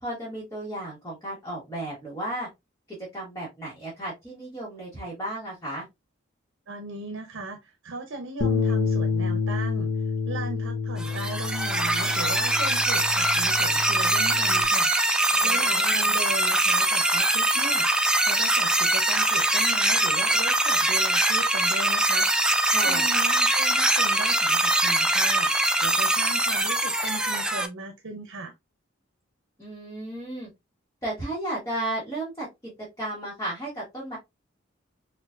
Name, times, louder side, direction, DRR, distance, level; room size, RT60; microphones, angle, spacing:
voice 1, 0.0-2.5 2.9-5.9 15.3-16.1 22.7-23.1 29.6-30.5 31.0-32.7 33.0-34.2, right 1 dB, 15° left, 1.3 m, -34 dB
voice 2, 6.7-9.9 10.2-14.9 15.4-22.3 22.8-25.5 25.8-28.5, right 3 dB, 85° right, 0.7 m, -37 dB
Bass guitar, 8.4-14.7, left 4 dB, 55° left, 0.8 m, -28 dB
sound 1, 11.0-27.7, right 1 dB, 5° right, 0.4 m, -23 dB
4.5 x 2.5 x 2.4 m
head